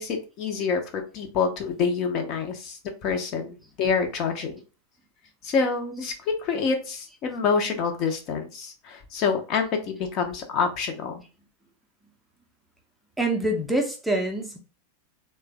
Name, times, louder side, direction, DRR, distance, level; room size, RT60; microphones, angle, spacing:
voice 1, 0.0-4.6 5.4-11.2, left 5 dB, 40° left, 5 dB, 0.6 m, -27 dB
voice 2, 13.2-14.6, right 1 dB, 5° right, 1 dB, 0.6 m, -25 dB
3.2 x 2.2 x 3.3 m, 0.33 s
figure-of-eight pair, 90°, 0 cm